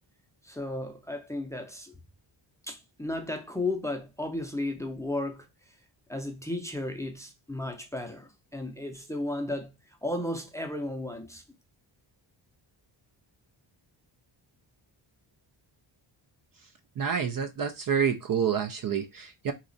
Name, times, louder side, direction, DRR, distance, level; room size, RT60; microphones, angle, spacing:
voice 1, 0.4-1.9 2.7-5.5 6.1-9.7 10.0-11.4, left 2 dB, 5° left, 0.5 m, -34 dB
voice 2, 17.0-19.5, right 7 dB, 45° right, 0.5 m, -28 dB
3.0 x 2.4 x 3.8 m
wide cardioid pair, 110°, 47 cm